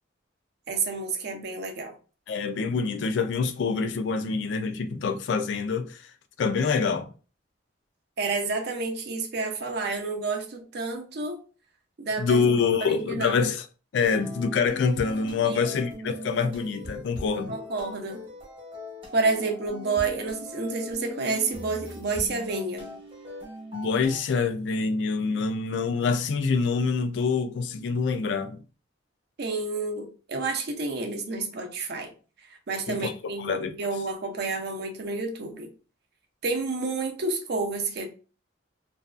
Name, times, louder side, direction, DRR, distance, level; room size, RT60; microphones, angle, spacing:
voice 1, 0.7-1.9 8.2-11.4 12.0-12.4 12.8-13.4 15.4-15.8 17.5-18.3 19.1-23.0 29.4-32.1 32.7-35.7 36.4-38.1, right 3 dB, 60° right, 0.5 m, -30 dB
voice 2, 2.3-6.0 6.4-7.1 12.2-13.6 13.9-17.6 23.7-28.6 32.9-33.8, left 5 dB, 65° left, 0.3 m, -26 dB
sound 1, 14.0-24.2, equal, 30° right, 0.8 m, -41 dB
2.6 x 2.2 x 2.3 m
head